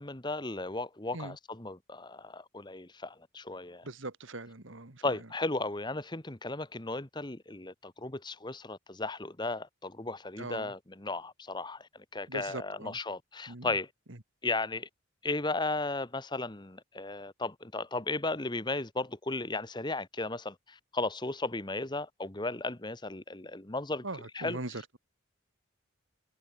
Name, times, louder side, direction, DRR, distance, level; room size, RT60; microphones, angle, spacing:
voice 1, 0.0-3.8 5.0-13.9 14.4-14.9 15.2-25.0, left 2 dB, 20° left, 1.3 m, -35 dB
voice 2, 3.8-5.0 10.4-10.7 12.3-13.0 13.5-13.7 24.0-25.0, right 2 dB, 70° right, 2.3 m, -40 dB
head